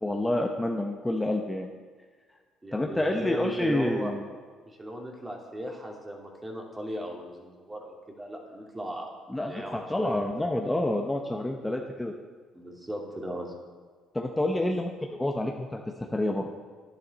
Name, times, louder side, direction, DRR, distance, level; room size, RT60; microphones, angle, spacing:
voice 1, 0.0-1.7 2.7-4.2 9.3-12.1 14.1-15.8 16.1-16.5, left 1 dB, 15° left, 1 dB, 1.0 m, -28 dB
voice 2, 2.6-4.1 4.7-9.1 9.4-10.7 12.5-13.5, equal, 20° right, 0 dB, 2.5 m, -37 dB
11.0 x 10.5 x 4.1 m, 1.5 s
supercardioid pair, 65°, 0 cm